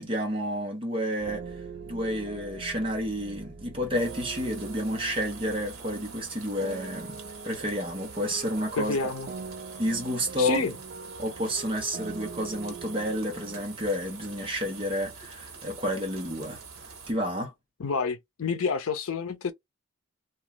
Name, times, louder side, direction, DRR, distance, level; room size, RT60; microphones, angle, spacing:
voice 1, 0.0-7.2 7.4-9.0 9.8-10.7 11.2-16.6 17.1-17.5, equal, 25° right, 1.0 m, -30 dB
sound 1, 1.2-13.6, right 5 dB, 45° right, 0.3 m, -42 dB
sound 2, 3.9-17.1, right 5 dB, 80° right, 1.3 m, -45 dB
voice 2, 8.8-9.3 10.4-10.7 17.8-19.5, left 5 dB, 80° left, 0.6 m, -29 dB
3.0 x 2.4 x 2.2 m
head